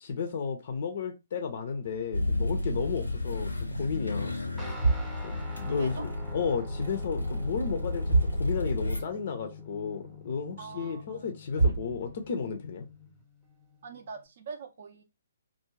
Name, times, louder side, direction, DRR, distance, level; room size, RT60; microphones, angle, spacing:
voice 1, 0.0-3.5 3.8-4.4 5.2-12.9, left 6 dB, 45° left, 0.4 m, -33 dB
sound 1, 1.8-3.5 3.8-4.1 4.6-6.4 6.7-7.4 7.6-7.7 8.0-9.0 9.4-9.5 10.1-10.2 11.2-11.3 11.5-12.5, right 3 dB, 85° right, 0.9 m, -31 dB
sound 2, 2.1-9.0, left 2 dB, 85° left, 0.6 m, -32 dB
Guitar, 4.6-14.3, left 2 dB, 5° right, 0.6 m, -46 dB
voice 2, 5.7-6.1 10.6-11.3 13.8-15.0, right 4 dB, 50° right, 0.4 m, -43 dB
2.3 x 2.1 x 3.1 m
figure-of-eight pair, 125°, 0 cm